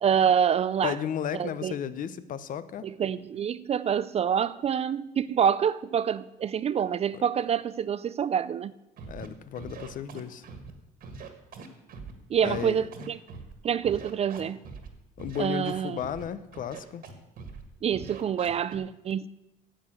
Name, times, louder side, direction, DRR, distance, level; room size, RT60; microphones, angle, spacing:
voice 1, 0.0-0.9 1.4-1.7 2.8-8.7 12.3-13.2 13.6-14.6 15.4-16.0 17.8-19.3, right 8 dB, 40° right, 0.4 m, -26 dB
voice 2, 0.8-2.9 7.1-7.2 9.1-10.4 12.4-13.1 15.2-17.0, left 9 dB, 50° left, 0.7 m, -34 dB
Scratching (performance technique), 9.0-9.3 9.5-10.7 11.0-12.1 12.4-13.5 13.8-14.9 15.2-16.2 16.5-17.1 17.4-17.6 17.9-18.7, right 5 dB, 60° right, 1.8 m, -42 dB
10.0 x 7.6 x 7.7 m
cardioid pair, 110°, 17 cm